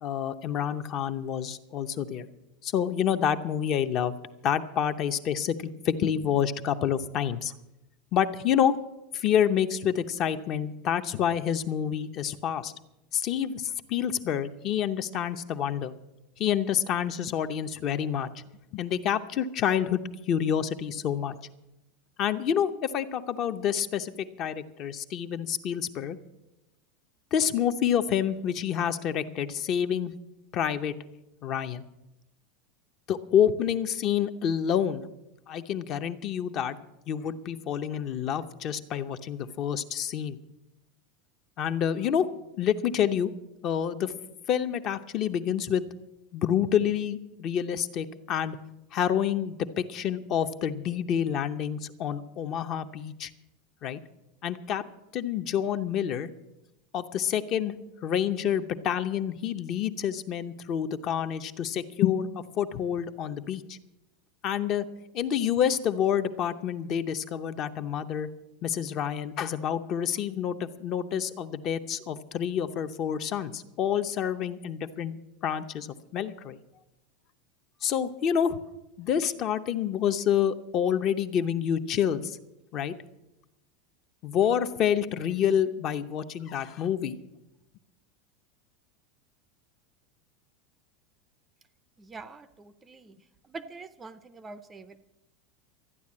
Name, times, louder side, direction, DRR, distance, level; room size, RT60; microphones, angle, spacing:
voice 1, 0.0-2.3 2.6-4.1 4.4-7.5 8.1-8.8 9.1-12.7 13.1-15.9 16.4-18.4 18.7-20.0 20.3-21.3 22.2-26.2 27.3-30.1 30.5-30.9 31.4-31.8 33.1-35.0 35.5-36.8 37.1-40.4 41.6-42.3 42.6-43.3 43.6-44.1 44.5-45.8 46.3-48.6 48.9-53.3 53.8-54.0 54.4-54.8 55.1-56.3 56.9-57.7 58.0-63.8 64.4-64.9 65.1-68.3 68.6-75.2 75.4-75.9 76.1-76.6 77.8-78.6 79.0-82.4 82.7-82.9 84.2-87.2, left 9 dB, 30° left, 10 dB, 0.7 m, -28 dB
voice 2, 92.0-93.2 93.4-95.0, right 4 dB, 10° right, 13 dB, 0.5 m, -45 dB
13.5 x 9.7 x 8.5 m, 0.92 s
supercardioid pair, 175°, 0 cm